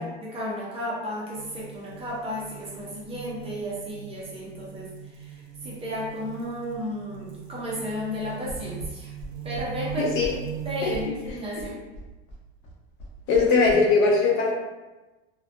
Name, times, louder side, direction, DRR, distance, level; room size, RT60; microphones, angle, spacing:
voice 1, 0.0-9.1 9.4-10.1 10.6-11.8, equal, 20° right, -5 dB, 0.4 m, -33 dB
sound 1, 1.3-11.1, right 9 dB, 80° right, 0.6 m, -40 dB
sound 2, 8.5-13.8, right 1 dB, 65° left, 0.8 m, -40 dB
voice 2, 10.0-10.3 10.8-10.9 11.6-11.7 13.3-14.5, left 4 dB, 40° left, -1 dB, 0.4 m, -20 dB
2.4 x 2.2 x 2.5 m, 1.1 s
supercardioid pair, 135°, 32 cm